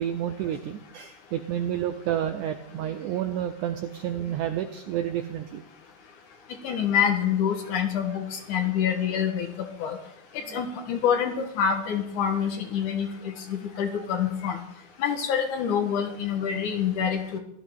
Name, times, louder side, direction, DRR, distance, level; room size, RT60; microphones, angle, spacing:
voice 1, 0.0-5.6 10.5-10.6, right 10 dB, 80° right, 8 dB, 1.8 m, -30 dB
voice 2, 6.6-9.5 9.8-10.0 10.3-14.6 15.0-17.4, left 8 dB, 65° left, 4 dB, 2.4 m, -26 dB
17.0 x 13.0 x 3.7 m, 0.77 s
omnidirectional pair, 4.4 m